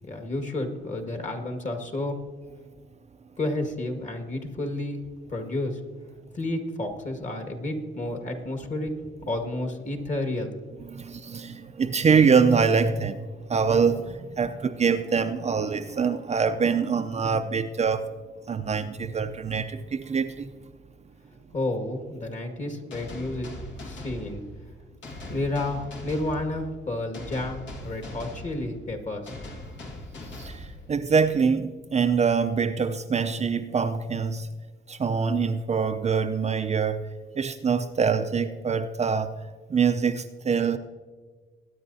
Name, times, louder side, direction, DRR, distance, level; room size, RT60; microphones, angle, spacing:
voice 1, 0.0-2.2 3.4-5.0 5.3-5.8 6.3-10.5 21.5-23.5 23.8-24.4 25.3-29.3, left 2 dB, 40° left, 4 dB, 2.0 m, -31 dB
voice 2, 10.8-18.1 18.5-20.5 30.4-34.5 34.9-37.1 37.4-39.3 39.7-40.8, right 5 dB, 35° right, 7 dB, 0.6 m, -24 dB
sound 1, 22.9-31.4, left 1 dB, 70° left, 1.9 m, -41 dB
22.0 x 9.7 x 2.8 m, 1.4 s
cardioid pair, 90°, 20 cm